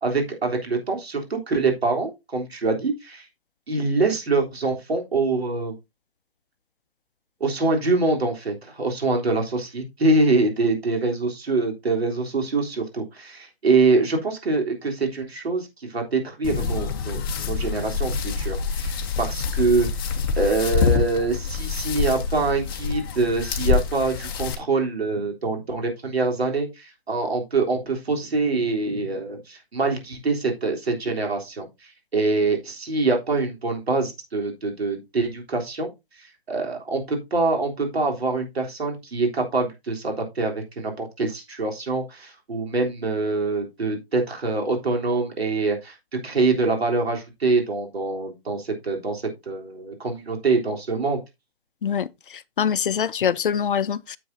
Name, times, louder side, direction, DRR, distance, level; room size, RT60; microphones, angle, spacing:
voice 1, 0.0-3.3 3.7-5.8 7.4-20.1 20.4-35.9 36.2-51.2, right 3 dB, 80° right, 3.5 m, -24 dB
sound 1, 16.4-24.5, left 5 dB, 20° left, 1.0 m, -26 dB
voice 2, 51.8-54.2, left 8 dB, 55° left, 0.5 m, -24 dB
10.0 x 7.5 x 2.7 m
hypercardioid pair, 155°, 31 cm